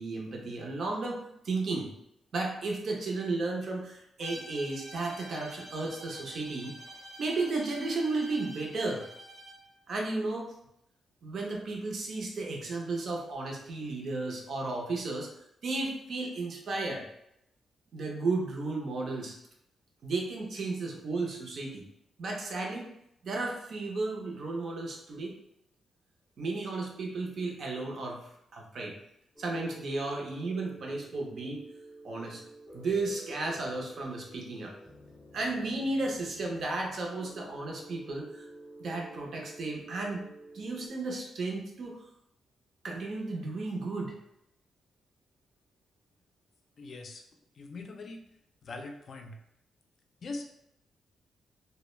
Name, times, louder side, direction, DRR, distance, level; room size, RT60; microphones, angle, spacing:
voice 1, 0.0-1.9 2.3-6.8 7.2-9.0 9.9-10.5 11.2-15.3 15.6-17.0 17.9-19.4 20.0-21.8 22.2-22.9 23.2-25.3 26.4-29.0 29.4-31.6 32.0-32.4 32.7-34.7 35.3-38.5 38.8-40.3 40.5-42.0 42.8-44.2, right 3 dB, 55° right, 0 dB, 0.6 m, -34 dB
Bowed string instrument, 4.2-9.7, right 1 dB, 75° right, 1.1 m, -47 dB
sound 1, 29.4-40.9, right 1 dB, 10° left, 0.6 m, -50 dB
voice 2, 46.8-47.2 47.6-48.2 48.6-49.4 50.2-50.5, left 3 dB, 50° left, 4 dB, 0.3 m, -41 dB
2.2 x 2.0 x 3.1 m, 0.77 s
cardioid pair, 120°, 0 cm